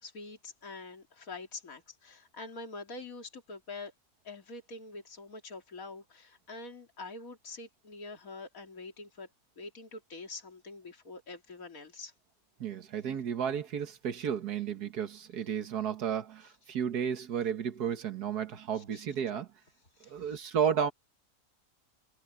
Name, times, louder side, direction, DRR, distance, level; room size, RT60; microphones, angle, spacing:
voice 1, 0.0-3.9 4.2-9.3 9.6-12.1 18.8-19.0 20.0-20.4, left 3 dB, 60° left, 3.2 m, -45 dB
voice 2, 12.6-19.5 20.1-20.9, right 8 dB, 90° right, 1.9 m, -32 dB
omnidirectional pair, 1.6 m